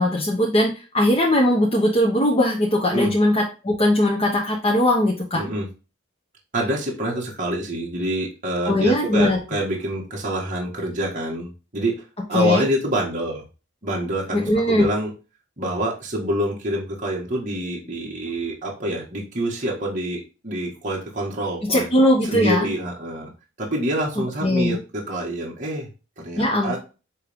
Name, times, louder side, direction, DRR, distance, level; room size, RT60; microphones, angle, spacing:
voice 1, 0.0-5.4 8.7-9.4 12.3-12.6 14.3-14.9 21.7-22.7 24.4-24.8 26.4-26.8, left 1 dB, 30° left, -2 dB, 1.2 m, -19 dB
voice 2, 5.4-5.7 6.5-12.0 12.3-13.4 13.8-15.1 15.6-21.9 22.2-23.3 23.6-25.9 26.2-26.8, right 1 dB, 40° right, -3 dB, 1.8 m, -26 dB
9.5 x 3.3 x 3.7 m, 0.32 s
head